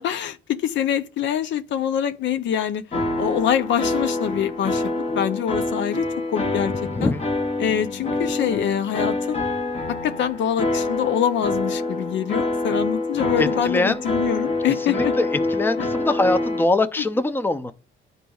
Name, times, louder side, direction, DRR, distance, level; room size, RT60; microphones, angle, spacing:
voice 1, 0.0-2.8 3.2-6.1 6.3-6.7 7.0-7.1 7.6-9.4 9.9-15.1 17.0-17.1, left 9 dB, 70° left, 0.5 m, -25 dB
sound 1, 2.9-16.6, left 2 dB, 30° left, 1.0 m, -26 dB
voice 2, 6.9-7.2 13.4-14.0 14.9-15.3 15.5-17.7, left 2 dB, 10° left, 0.5 m, -22 dB
11.0 x 4.0 x 2.3 m
cardioid pair, 90°, 20 cm